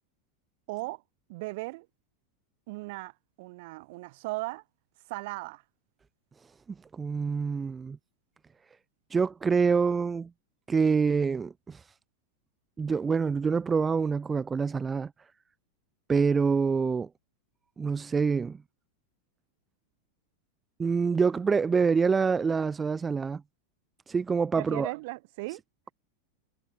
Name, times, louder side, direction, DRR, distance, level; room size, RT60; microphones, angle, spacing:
voice 1, 0.7-1.0 1.3-1.9 2.7-4.6 5.1-5.6 24.6-25.6, right 23 dB, 50° right, 5.2 m, -37 dB
voice 2, 6.9-8.0 9.1-10.3 10.7-11.8 12.8-15.1 16.1-17.1 17.8-18.6 20.8-23.4 24.1-24.9, right 5 dB, 15° right, 1.0 m, -26 dB
figure-of-eight pair, 90°, 0 cm